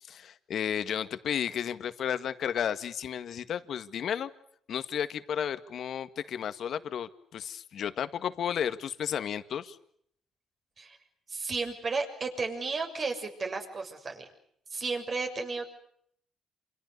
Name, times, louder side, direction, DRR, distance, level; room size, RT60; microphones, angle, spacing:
voice 1, 0.1-4.3 4.7-9.8, left 8 dB, 65° left, 11 dB, 1.8 m, -33 dB
voice 2, 11.3-14.2 14.7-15.7, right 4 dB, 45° right, 5 dB, 6.8 m, -33 dB
28.5 x 27.5 x 6.8 m, 0.68 s
cardioid pair, 90°, 0 cm